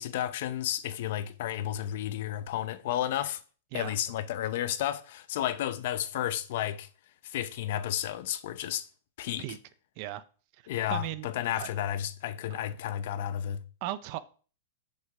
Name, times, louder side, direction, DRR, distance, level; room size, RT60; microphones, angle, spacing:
voice 1, 0.0-3.4 3.7-6.9 7.2-8.9 9.2-9.4 10.7-13.6, left 11 dB, 50° left, 0.8 m, -32 dB
voice 2, 10.9-11.7 13.8-14.2, right 14 dB, 35° right, 0.6 m, -37 dB
8.0 x 6.6 x 4.8 m
supercardioid pair, 170°, 0 cm